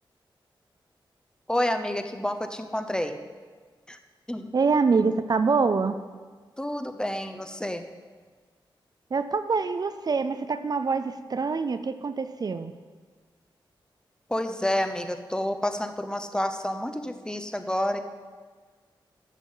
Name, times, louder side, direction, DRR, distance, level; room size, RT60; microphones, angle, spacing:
voice 1, 1.5-3.2 3.9-4.0 4.3-4.5 6.6-7.8 14.3-18.0, left 1 dB, 10° left, 8 dB, 0.8 m, -29 dB
voice 2, 4.5-6.0 9.1-12.7, right 4 dB, 50° right, 11 dB, 0.5 m, -25 dB
12.5 x 7.5 x 5.6 m, 1.5 s
wide cardioid pair, 90°, 9 cm